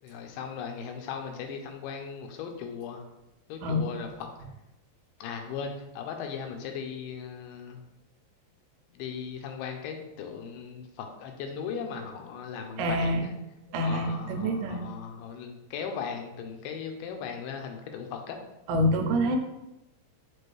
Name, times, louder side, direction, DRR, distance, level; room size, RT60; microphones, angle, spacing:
voice 1, 0.0-3.0 3.5-4.3 5.2-7.8 8.9-13.3 13.8-18.4 19.3-19.4, left 6 dB, 85° left, 4 dB, 2.2 m, -38 dB
voice 2, 12.8-13.3 13.7-14.8 18.7-19.4, equal, 85° right, 4 dB, 2.2 m, -26 dB
6.1 x 2.5 x 3.1 m, 0.94 s
omnidirectional pair, 3.8 m